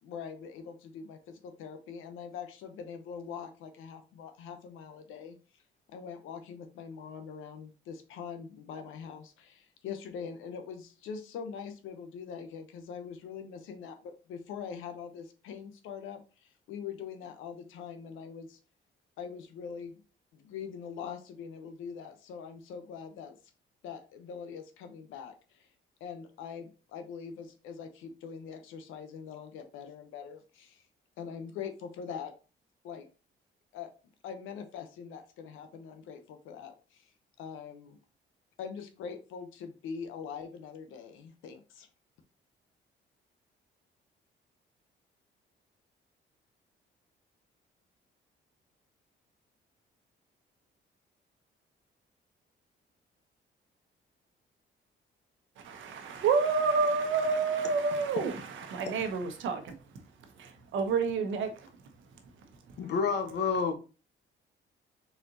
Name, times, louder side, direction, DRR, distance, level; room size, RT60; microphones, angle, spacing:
voice 1, 0.0-5.4 5.9-18.6 19.2-19.9 20.3-23.4 23.8-25.7 26.0-30.8 31.2-32.3 32.8-33.1 33.7-33.9 34.2-37.1 37.4-38.0 38.6-41.9, left 6 dB, 90° left, 0.8 m, -43 dB
voice 2, 55.6-59.7 60.4-61.7 62.7-62.8, right 5 dB, 75° right, 0.9 m, -29 dB
voice 3, 62.8-63.7, left 5 dB, 60° left, 1.0 m, -29 dB
4.1 x 3.8 x 2.7 m
cardioid pair, 90°, 20 cm